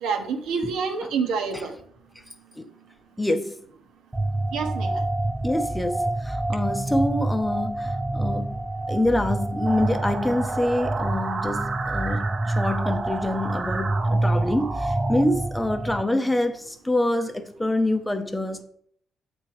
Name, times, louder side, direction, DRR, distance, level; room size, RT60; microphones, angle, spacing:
voice 1, 0.0-1.7 4.5-4.9, right 5 dB, 90° right, 1.2 m, -27 dB
voice 2, 3.2-3.5 5.4-8.6 8.9-18.6, left 1 dB, 5° left, 0.7 m, -26 dB
sound 1, 4.1-16.0, right 2 dB, 10° right, 0.3 m, -27 dB
sound 2, 9.7-15.2, right 3 dB, 40° right, 0.9 m, -32 dB
8.0 x 4.4 x 4.8 m
cardioid pair, 120°, 0 cm